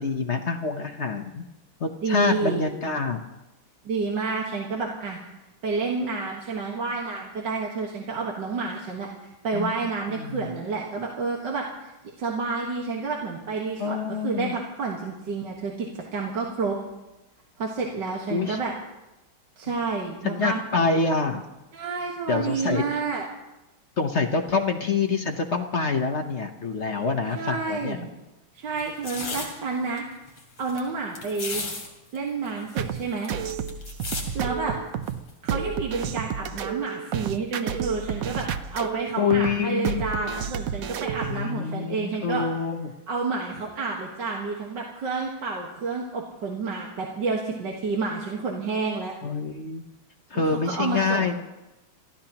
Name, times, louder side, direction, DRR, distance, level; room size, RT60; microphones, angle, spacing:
voice 1, 0.0-1.4 1.8-3.3 9.5-9.7 10.1-10.5 13.8-14.5 18.3-18.6 20.2-21.4 22.3-23.0 24.0-28.0 39.2-40.1 41.2-42.9 49.2-49.8 50.3-51.3, left 4 dB, 55° left, 5 dB, 0.7 m, -26 dB
voice 2, 2.0-2.6 3.9-5.2 5.6-9.1 9.4-11.9 12.2-16.8 17.6-18.8 19.6-20.6 21.7-23.2 27.4-28.1 28.5-30.0 30.6-31.6 32.1-33.3 34.3-34.8 35.4-42.4 43.1-49.1 50.3-51.3, right 4 dB, 55° right, -1 dB, 2.1 m, -29 dB
sound 1, 28.8-29.5 30.0-30.1 30.3-30.8 31.2-31.9 32.2-32.3 32.5-34.3 35.1-35.3, left 3 dB, 75° left, 3.7 m, -34 dB
sound 2, 32.8-41.4, right 8 dB, 85° right, 0.7 m, -31 dB
28.5 x 14.5 x 2.9 m, 1.0 s
omnidirectional pair, 2.4 m